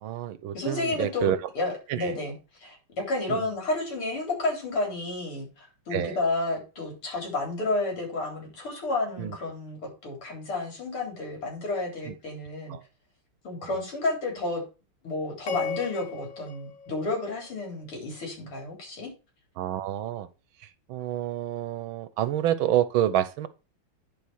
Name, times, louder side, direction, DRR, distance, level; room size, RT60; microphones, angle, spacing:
voice 1, 0.0-1.4 1.9-2.2 3.3-3.4 5.9-6.2 9.2-9.4 12.1-12.2 12.7-12.8 19.6-20.3 20.9-23.5, right 12 dB, 75° right, 1.5 m, -28 dB
voice 2, 0.5-2.3 2.6-12.8 13.4-14.6 15.0-19.1, left 2 dB, 75° left, 4.7 m, -31 dB
sound 1, 15.5-17.8, left 5 dB, 55° left, 0.9 m, -37 dB
10.5 x 5.0 x 4.4 m
omnidirectional pair, 2.4 m